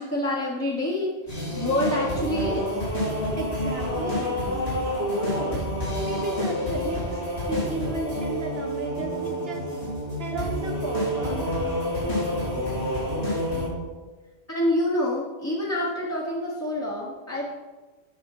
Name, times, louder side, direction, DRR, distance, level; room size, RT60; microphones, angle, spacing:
voice 1, 0.0-2.8 11.2-11.7 12.6-12.7 14.5-17.5, left 1 dB, 15° left, -5 dB, 1.1 m, -27 dB
sound 1, 1.3-13.7, left 1 dB, 90° left, 3.5 m, -28 dB
voice 2, 3.4-9.7 10.2-11.4, right 3 dB, 70° right, 1 dB, 1.1 m, -34 dB
8.8 x 6.1 x 4.8 m, 1.3 s
omnidirectional pair, 1.1 m